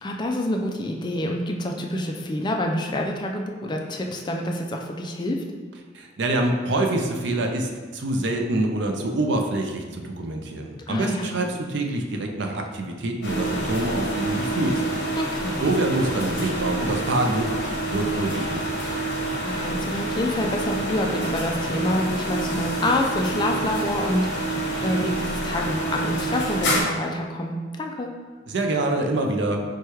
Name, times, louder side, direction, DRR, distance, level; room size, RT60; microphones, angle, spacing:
voice 1, 0.0-5.4 10.9-11.3 15.2-15.6 19.3-24.5 24.8-28.1, left 1 dB, 25° left, 2 dB, 0.4 m, -27 dB
voice 2, 5.9-14.8 15.6-17.5 17.9-18.8 28.5-29.6, right 2 dB, 65° right, 3 dB, 0.5 m, -25 dB
sound 1, 13.2-26.8, right 1 dB, 60° left, 1.0 m, -28 dB
4.6 x 2.3 x 4.5 m, 1.4 s
head